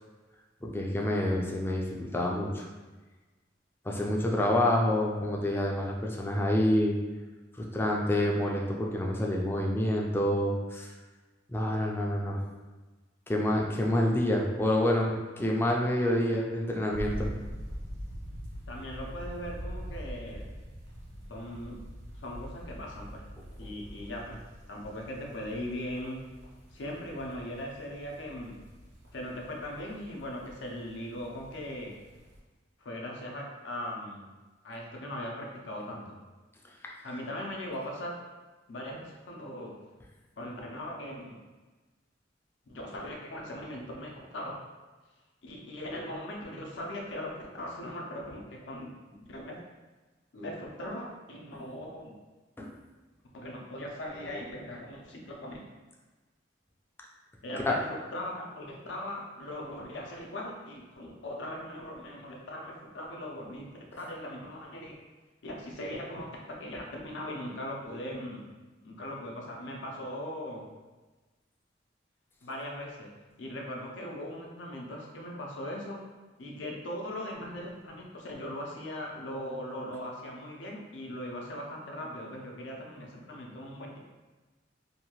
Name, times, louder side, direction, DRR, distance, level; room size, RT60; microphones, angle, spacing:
voice 1, 0.6-1.9 2.1-2.7 3.9-7.0 7.6-10.9 11.5-12.4 13.3-17.3 36.8-36.9 52.6-52.7 57.7-57.8, left 1 dB, 15° left, -1 dB, 0.3 m, -27 dB
sound 1, 16.9-32.4, equal, 80° right, 1.0 m, -44 dB
voice 2, 18.7-20.5 21.3-21.8 22.2-23.2 23.6-24.4 24.7-26.2 26.7-28.6 29.1-32.0 32.8-34.3 34.6-36.1 37.0-38.2 38.7-39.7 40.4-41.4 42.7-44.6 45.4-49.6 50.3-52.1 53.3-55.6 57.4-63.7 64.0-65.0 65.4-68.5 68.8-70.7 72.4-73.1 73.4-76.0 76.4-84.0, left 1 dB, 75° left, -1 dB, 0.5 m, -39 dB
2.7 x 2.3 x 2.9 m, 1.2 s
head